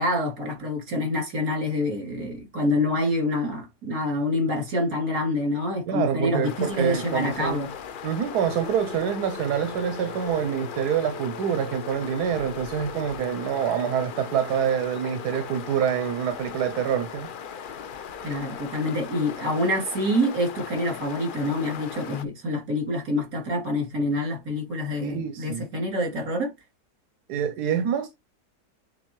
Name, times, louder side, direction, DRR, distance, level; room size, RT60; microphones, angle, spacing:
voice 1, 0.0-7.7 18.2-26.5, left 1 dB, 65° right, 3.5 m, -26 dB
voice 2, 5.9-7.7 8.0-17.3 25.0-25.7 27.3-28.1, right 8 dB, 80° right, 1.3 m, -26 dB
sound 1, 6.4-22.2, left 7 dB, 85° left, 0.4 m, -39 dB
sound 2, 7.9-21.8, left 3 dB, 50° right, 2.7 m, -44 dB
9.3 x 3.6 x 3.1 m
omnidirectional pair, 1.7 m